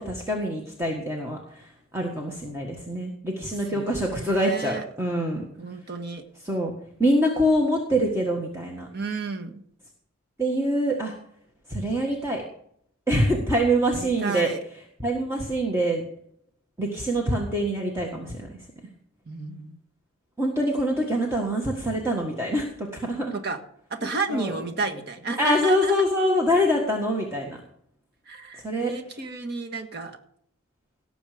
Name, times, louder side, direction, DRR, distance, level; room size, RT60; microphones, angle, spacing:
voice 1, 0.0-1.6 1.9-5.4 6.4-6.7 7.0-8.9 10.4-11.1 11.7-12.4 13.1-14.5 15.0-16.0 16.8-18.5 20.4-23.3 24.3-24.5 25.4-27.6 28.6-28.9, equal, 15° right, 0 dB, 1.6 m, -25 dB
voice 2, 3.4-4.8 5.6-6.2 8.9-9.6 13.9-14.6 19.3-19.8 23.3-23.6 23.9-26.0 28.3-30.2, right 3 dB, 50° right, 4 dB, 1.6 m, -32 dB
18.0 x 7.1 x 5.1 m, 0.67 s
head